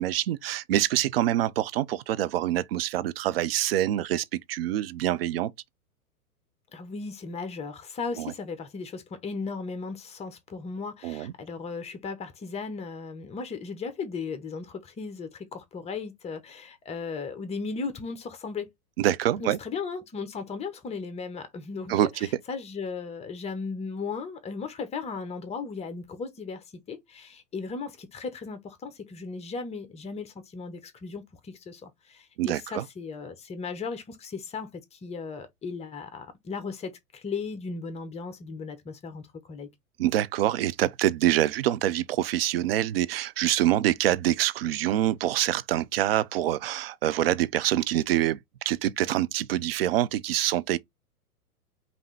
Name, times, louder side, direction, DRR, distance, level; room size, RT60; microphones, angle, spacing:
voice 1, 0.0-5.5 8.2-8.3 11.0-11.3 19.0-19.6 21.9-22.3 32.4-32.8 40.0-48.4 48.7-50.8, right 13 dB, 45° right, 0.4 m, -25 dB
voice 2, 6.7-18.7 19.4-39.7, left 4 dB, 15° left, 0.8 m, -36 dB
5.3 x 2.6 x 3.2 m
figure-of-eight pair, 100°, 45 cm